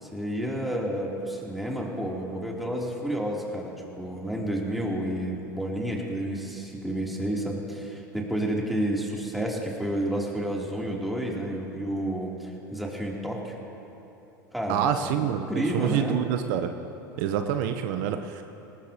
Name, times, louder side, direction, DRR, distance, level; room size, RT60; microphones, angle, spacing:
voice 1, 0.0-13.5 14.5-16.2, right 1 dB, ahead, -3 dB, 3.0 m, -30 dB
voice 2, 14.7-16.7 17.2-18.4, right 9 dB, 65° right, 7 dB, 0.8 m, -27 dB
22.0 x 18.5 x 2.9 m, 3.0 s
hypercardioid pair, 90°, 11 cm